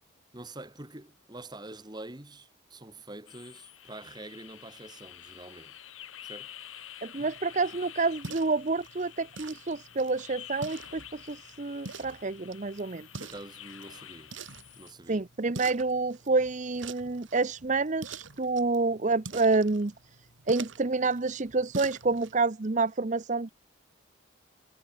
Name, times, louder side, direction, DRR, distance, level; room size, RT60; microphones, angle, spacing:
voice 1, 0.3-5.7 6.2-6.5 13.2-14.3 14.8-15.2, right 2 dB, 20° right, 1.9 m, -46 dB
sound 1, 3.3-14.9, left 11 dB, 85° left, 3.5 m, -49 dB
voice 2, 7.0-13.1 15.1-19.9 20.5-23.5, right 3 dB, 35° right, 0.7 m, -28 dB
sound 2, 7.2-22.4, right 3 dB, 70° right, 2.9 m, -46 dB
head